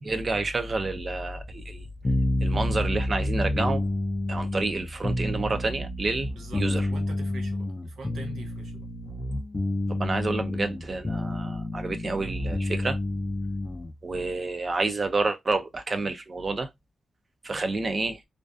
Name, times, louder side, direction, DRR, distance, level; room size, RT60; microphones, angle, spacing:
voice 1, 0.0-1.9 2.4-3.9 4.3-6.3 6.6-6.9 9.9-13.0 14.0-16.7 17.4-18.2, right 3 dB, 40° right, 0.4 m, -29 dB
sound 1, 2.0-13.9, left 1 dB, 25° left, 0.4 m, -29 dB
voice 2, 6.3-8.9, right 3 dB, 85° right, 0.6 m, -43 dB
2.5 x 2.3 x 2.3 m
cardioid pair, 85°, 0 cm